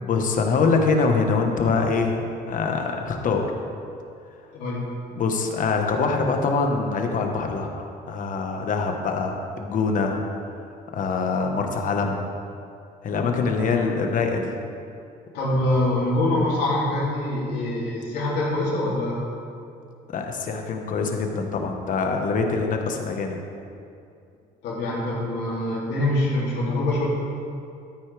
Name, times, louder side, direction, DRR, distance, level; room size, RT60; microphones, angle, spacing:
voice 1, 0.0-3.5 5.1-7.7 8.1-10.2 10.9-12.3 13.0-14.5 20.1-23.4, left 4 dB, 50° left, 3 dB, 1.3 m, -24 dB
voice 2, 4.5-4.8 13.7-13.8 15.3-19.2 24.6-27.0, left 1 dB, 85° left, -7 dB, 2.9 m, -24 dB
13.0 x 9.6 x 3.4 m, 2.5 s
cardioid pair, 110°, 17 cm